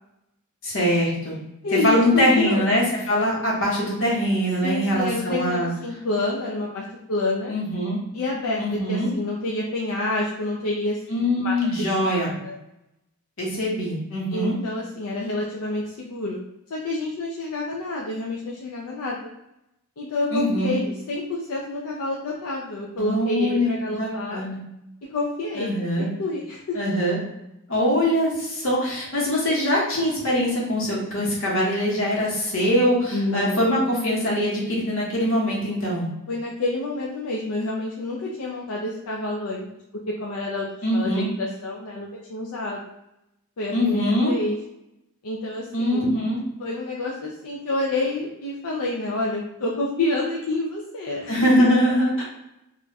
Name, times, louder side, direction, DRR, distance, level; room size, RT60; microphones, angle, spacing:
voice 1, 0.6-1.4 1.8-5.7 7.5-8.0 8.6-9.1 11.1-12.3 13.4-14.6 20.3-20.8 23.0-24.6 25.6-26.1 26.7-27.2 27.7-36.1 40.8-41.3 43.7-44.3 45.7-46.4 51.3-52.2, equal, 60° left, -4 dB, 1.2 m, -23 dB
voice 2, 1.6-2.7 4.6-7.5 8.1-12.6 14.3-16.4 16.7-19.3 20.0-24.4 25.1-26.8 33.1-33.9 36.3-39.7 40.1-42.8 43.6-44.6 45.2-46.1 46.6-51.3, left 2 dB, 80° left, -3 dB, 0.5 m, -28 dB
2.5 x 2.2 x 4.0 m, 0.88 s
head